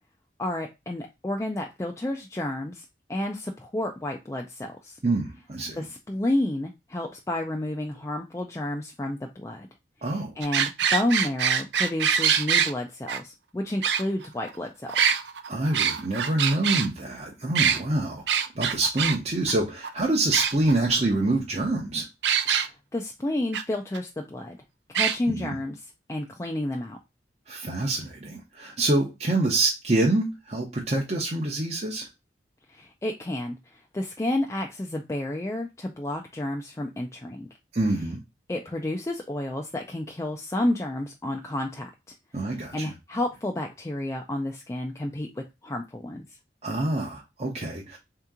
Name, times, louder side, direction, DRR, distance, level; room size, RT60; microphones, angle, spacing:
voice 1, 0.4-2.8 3.1-5.0 5.8-9.7 10.1-15.0 22.5-24.6 24.9-27.0 32.7-37.5 38.5-41.9 42.7-46.3, left 1 dB, 15° left, 0.4 m, -31 dB
voice 2, 5.0-5.8 10.0-10.3 15.5-22.1 25.3-25.5 27.5-32.1 37.7-38.2 42.3-42.9 46.6-48.0, right 2 dB, 35° right, 0.7 m, -26 dB
sound 1, 10.4-12.7 13.1-13.2 13.8-14.5 14.9-16.9 17.5-17.8 18.3-19.2 19.5-19.6 19.8-19.9 20.3-20.9 22.2-22.7 23.5-23.6 23.9-24.0 24.9-25.2, right 7 dB, 80° right, 0.5 m, -24 dB
3.7 x 2.9 x 3.5 m
head